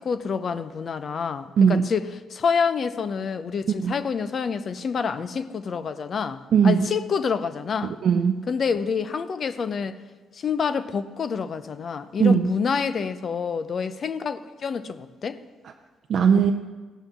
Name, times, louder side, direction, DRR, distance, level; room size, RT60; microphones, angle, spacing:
voice 1, 0.0-8.0 8.5-10.0 10.3-15.4, left 6 dB, 50° left, 0.6 m, -27 dB
voice 2, 1.6-1.9 3.8-3.9 6.5-6.9 7.8-8.5 12.2-12.5 16.1-16.5, right 6 dB, 60° right, 0.5 m, -19 dB
16.5 x 5.6 x 7.1 m
cardioid pair, 90°, 0 cm